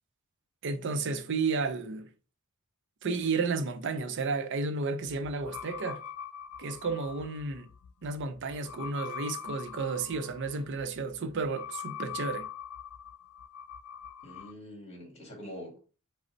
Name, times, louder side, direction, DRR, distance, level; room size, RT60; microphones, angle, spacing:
voice 1, 0.6-2.1 3.0-6.0 6.6-7.7 8.0-12.5, right 4 dB, 60° right, 0.5 m, -32 dB
sound 1, 5.1-14.5, left 8 dB, 80° left, 0.3 m, -43 dB
voice 2, 14.2-15.8, equal, 30° left, 1.7 m, -44 dB
5.0 x 2.0 x 4.3 m
head